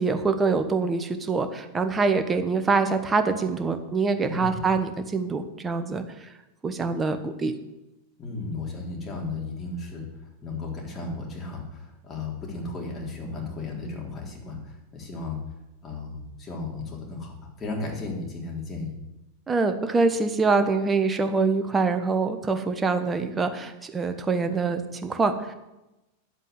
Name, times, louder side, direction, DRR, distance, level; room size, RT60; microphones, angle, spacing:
voice 1, 0.0-6.3 6.6-7.5 19.5-25.5, right 4 dB, 15° right, 8 dB, 1.3 m, -25 dB
voice 2, 4.3-4.6 8.2-10.1 10.4-15.4 15.8-18.9, left 3 dB, 25° left, 0 dB, 3.7 m, -35 dB
10.0 x 8.1 x 7.7 m, 0.98 s
figure-of-eight pair, 90°, 0 cm